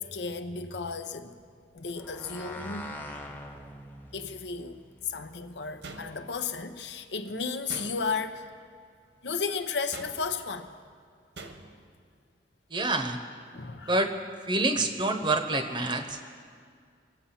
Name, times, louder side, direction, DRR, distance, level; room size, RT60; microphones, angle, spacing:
voice 1, 0.0-1.3 1.7-2.9 4.1-8.5 9.2-10.7 13.5-14.0, left 5 dB, 80° left, 0.9 m, -34 dB
sound 1, 2.0-6.6, left 1 dB, 10° left, 1.0 m, -45 dB
sound 2, 5.8-6.5 7.7-8.3 9.9-10.5 11.4-11.9, right 3 dB, 80° right, 1.2 m, -44 dB
voice 2, 12.7-13.2 13.9-14.1 14.5-16.2, right 2 dB, 25° right, 0.8 m, -27 dB
24.5 x 8.4 x 5.7 m
head